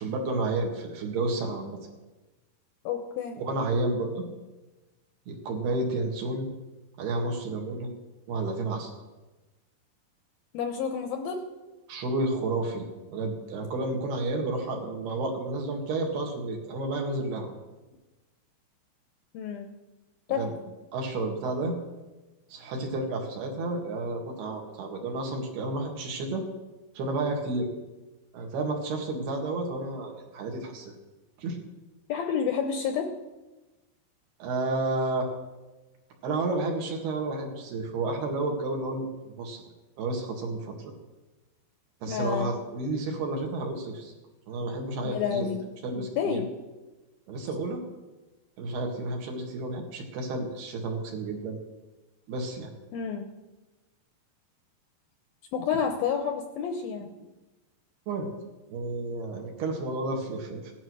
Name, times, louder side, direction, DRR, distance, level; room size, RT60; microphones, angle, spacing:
voice 1, 0.0-1.8 3.4-4.2 5.3-6.5 7.0-7.9 8.3-8.9 11.9-17.5 20.3-20.5 20.9-21.8 22.5-26.4 27.0-27.7 28.3-30.9 31.4-31.6 34.4-35.3 36.2-39.6 40.0-40.9 42.0-44.1 44.5-45.5 45.8-46.4 47.3-47.8 48.6-51.6 52.3-52.7 58.1-58.3 58.7-60.7, right 2 dB, 65° right, 2 dB, 3.8 m, -31 dB
voice 2, 2.8-3.4 10.5-11.4 19.3-19.7 20.3-20.4 32.1-33.1 42.1-42.6 45.0-45.6 45.9-46.5 52.9-53.3 55.5-57.1, left 7 dB, 75° left, 6 dB, 2.3 m, -30 dB
16.5 x 11.5 x 6.3 m, 1.1 s
omnidirectional pair, 5.1 m